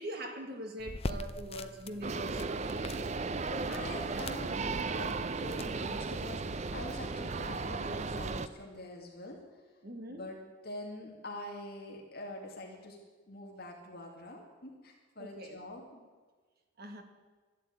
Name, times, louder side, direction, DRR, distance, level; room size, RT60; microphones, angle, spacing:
voice 1, 0.0-3.1 3.5-4.3 9.8-10.3 15.2-15.6 16.8-17.0, right 1 dB, 50° right, 5 dB, 1.9 m, -43 dB
sound 1, 0.8-6.3, left 2 dB, 30° left, 0.6 m, -44 dB
sound 2, 2.0-8.5, right 4 dB, 35° right, 0.5 m, -35 dB
voice 2, 3.4-9.4 10.1-13.0 13.3-16.0, left 1 dB, 50° left, 0 dB, 2.2 m, -45 dB
12.5 x 12.0 x 8.6 m, 1.4 s
head